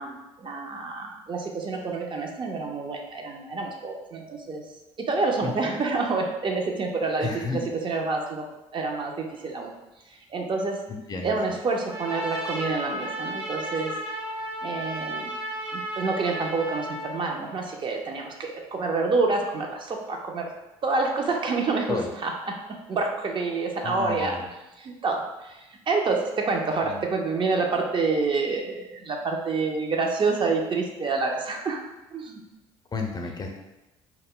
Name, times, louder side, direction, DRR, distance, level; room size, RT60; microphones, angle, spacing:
voice 1, 0.0-4.6 5.0-8.5 8.7-9.7 10.3-10.8 11.2-13.9 14.6-15.3 15.7-20.5 20.8-24.4 24.8-31.8 32.1-32.4, right 3 dB, 40° right, 1 dB, 0.5 m, -28 dB
voice 2, 5.4-5.8 7.2-7.6 10.9-11.4 21.9-22.1 23.8-24.5 26.8-27.0 32.9-33.5, left 4 dB, 30° left, 2 dB, 0.5 m, -32 dB
Trumpet, 11.9-17.2, right 1 dB, 85° right, 0.7 m, -33 dB
2.2 x 2.1 x 3.6 m, 0.98 s
supercardioid pair, 65°, 13 cm